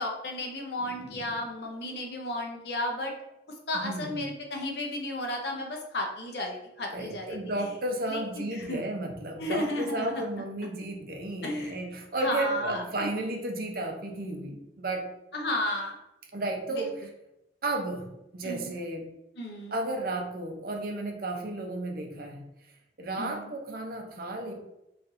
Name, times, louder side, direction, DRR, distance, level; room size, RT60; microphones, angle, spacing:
voice 1, 0.0-3.1 3.7-7.4 8.1-8.8 9.4-10.2 11.4-11.8 12.2-13.1 15.3-15.9 16.7-16.9 18.4-18.7 19.4-19.7 23.2-23.5, left 1 dB, 65° left, 1 dB, 0.8 m, -33 dB
voice 2, 0.8-1.3 3.7-4.2 6.9-15.1 16.3-17.0 17.6-19.1 19.7-22.4 23.0-24.5, right 2 dB, 55° right, 2 dB, 0.7 m, -33 dB
4.1 x 3.2 x 2.6 m, 0.88 s
head